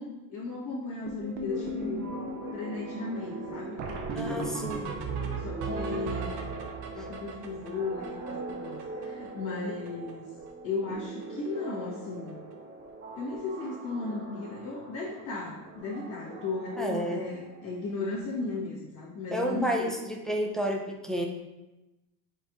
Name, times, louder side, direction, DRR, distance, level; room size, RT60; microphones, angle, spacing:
voice 1, 0.0-2.1 2.5-3.8 4.1-5.0 5.4-6.6 6.9-10.2 10.6-12.4 13.1-19.9, left 3 dB, 45° left, -7 dB, 1.2 m, -36 dB
sound 1, 1.1-9.3 9.6-9.7 9.9-10.1 10.4-10.9 11.2-11.5 12.3-12.4 12.8-12.9 13.2-13.3 15.6-15.7 18.0-18.1, right 3 dB, 70° right, 0.8 m, -38 dB
sound 2, 1.5-17.9, right 3 dB, 30° right, 1.0 m, -41 dB
voice 2, 4.2-4.9 7.0-7.1 9.6-9.8 16.8-17.2 19.3-21.3, equal, ahead, 0 dB, 0.5 m, -31 dB
4.5 x 2.5 x 4.6 m, 1.0 s
cardioid pair, 100°, 43 cm